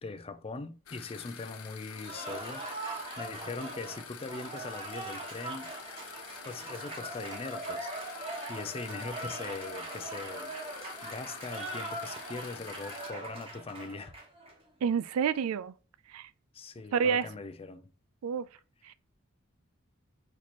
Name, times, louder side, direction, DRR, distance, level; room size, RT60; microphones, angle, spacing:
voice 1, 0.0-5.7 6.4-10.5 11.0-14.1 16.5-17.9, left 3 dB, 25° left, 0.4 m, -41 dB
sound 1, 0.9-13.1, left 8 dB, 80° left, 0.6 m, -48 dB
Cheering / Applause, 1.9-14.5, right 2 dB, 25° right, 1.2 m, -41 dB
voice 2, 14.8-15.7 16.1-16.3 16.9-17.3 18.2-18.5 18.8-18.9, right 7 dB, 80° right, 0.3 m, -29 dB
4.4 x 2.9 x 4.1 m
head